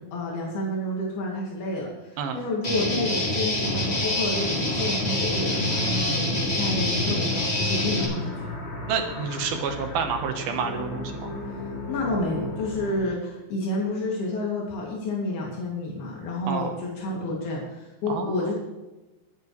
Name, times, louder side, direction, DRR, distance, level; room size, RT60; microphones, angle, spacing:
voice 1, 0.0-8.3 11.5-11.6 11.9-18.5, left 2 dB, 85° left, -3 dB, 4.5 m, -30 dB
Guitar, 2.6-8.0, left 1 dB, 20° left, 2.4 m, -26 dB
sound 1, 3.6-12.9, left 2 dB, 35° left, 4.9 m, -34 dB
voice 2, 8.9-11.3 16.5-16.7 18.1-18.5, right 6 dB, 75° right, 5 dB, 3.1 m, -29 dB
23.0 x 9.1 x 3.3 m, 1.1 s
omnidirectional pair, 4.3 m